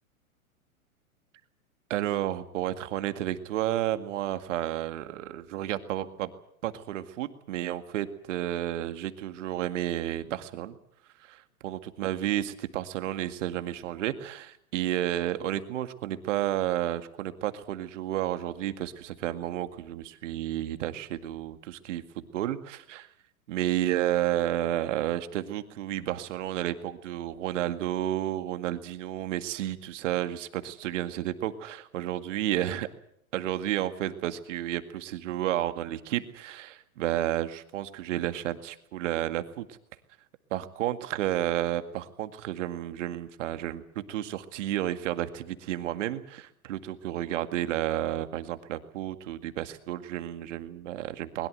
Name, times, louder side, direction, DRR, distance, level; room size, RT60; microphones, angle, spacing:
voice 1, 1.9-6.3 6.6-10.8 11.2-23.1 23.5-32.9 33.3-39.8 40.5-43.8 44.1-51.5, right 13 dB, 55° right, 10 dB, 2.1 m, -31 dB
21.5 x 20.5 x 7.9 m, 0.72 s
hypercardioid pair, 115°, 43 cm